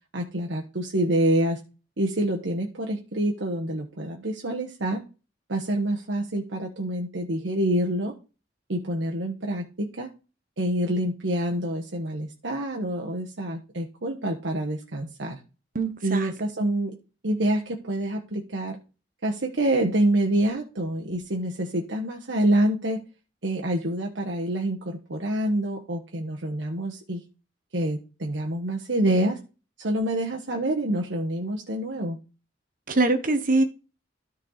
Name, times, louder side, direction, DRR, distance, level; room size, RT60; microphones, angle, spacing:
voice 1, 0.1-1.6 2.0-5.0 5.5-8.2 8.7-10.1 10.6-15.4 16.0-17.0 17.2-18.8 19.2-23.0 23.4-27.2 27.7-29.4 29.8-32.2, right 1 dB, 85° right, 1.3 m, -27 dB
voice 2, 15.7-16.3 32.9-33.6, right 2 dB, 50° right, 1.2 m, -23 dB
13.0 x 4.6 x 4.0 m
head